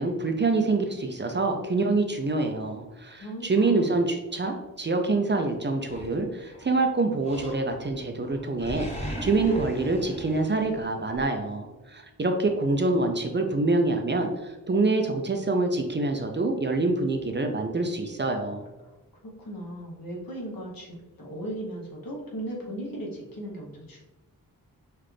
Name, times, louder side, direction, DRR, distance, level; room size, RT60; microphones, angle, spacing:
voice 1, 0.0-18.7, right 3 dB, 30° right, 4 dB, 0.5 m, -26 dB
voice 2, 3.2-3.9 19.4-24.0, right 1 dB, 70° left, -3 dB, 1.3 m, -37 dB
Animal, 5.9-6.7 7.2-8.0 8.3-11.2, equal, 20° left, 0.9 m, -38 dB
5.7 x 2.4 x 3.3 m, 1.1 s
wide cardioid pair, 115°, 35 cm